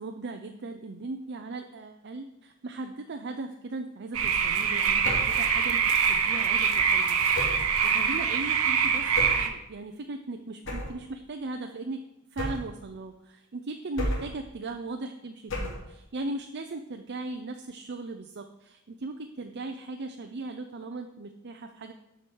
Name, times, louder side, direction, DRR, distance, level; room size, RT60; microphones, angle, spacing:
voice 1, 0.0-5.8 6.1-9.1 9.4-12.0 12.3-21.9, right 3 dB, 55° right, 5 dB, 0.5 m, -38 dB
sound 1, 4.1-9.5, right 6 dB, 80° right, 0.9 m, -24 dB
sound 2, 5.0-5.4 7.3-7.8 9.1-9.5 10.7-11.0 12.4-12.8 14.0-14.4 15.5-15.9, left 1 dB, 60° left, 2.5 m, -32 dB
13.0 x 5.1 x 4.6 m, 0.87 s
head